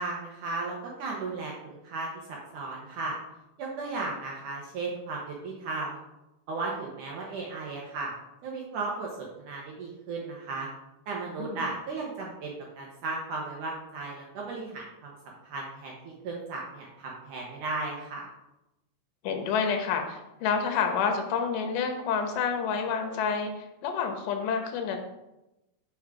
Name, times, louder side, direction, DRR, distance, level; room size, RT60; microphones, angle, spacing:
voice 1, 0.0-3.2 3.6-6.0 6.5-8.1 8.4-10.7 11.1-18.3, right 3 dB, 70° right, -1 dB, 2.0 m, -35 dB
voice 2, 19.2-23.5 23.8-25.0, left 6 dB, 85° left, 4 dB, 3.2 m, -28 dB
7.1 x 6.0 x 4.9 m, 0.94 s
omnidirectional pair, 4.8 m